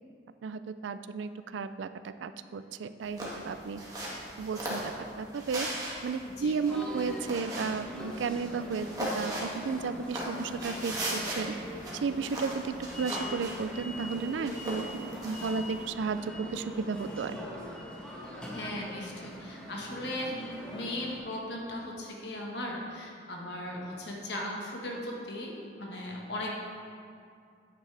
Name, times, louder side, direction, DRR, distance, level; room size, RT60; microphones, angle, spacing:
voice 1, 0.4-3.8 4.4-5.7 6.0-11.5 12.0-17.4, right 5 dB, 85° right, 12 dB, 0.3 m, -34 dB
sound 1, 3.0-15.8, right 1 dB, 20° right, 1.5 m, -39 dB
sound 2, 6.7-21.2, left 1 dB, 5° left, 1.1 m, -42 dB
voice 2, 18.5-26.6, left 1 dB, 65° left, -2 dB, 1.4 m, -37 dB
9.0 x 8.5 x 3.3 m, 2.4 s
head